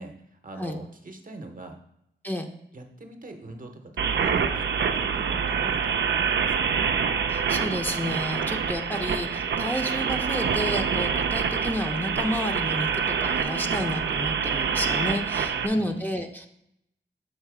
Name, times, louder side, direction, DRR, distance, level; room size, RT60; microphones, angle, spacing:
voice 1, 0.0-1.8 2.7-6.9 15.3-16.0, right 2 dB, 45° right, 5 dB, 0.8 m, -43 dB
sound 1, 4.0-15.7, right 6 dB, 80° right, 0.5 m, -26 dB
voice 2, 7.3-16.5, equal, 10° left, 2 dB, 0.6 m, -31 dB
6.5 x 3.0 x 4.8 m, 0.79 s
cardioid pair, 45°, 18 cm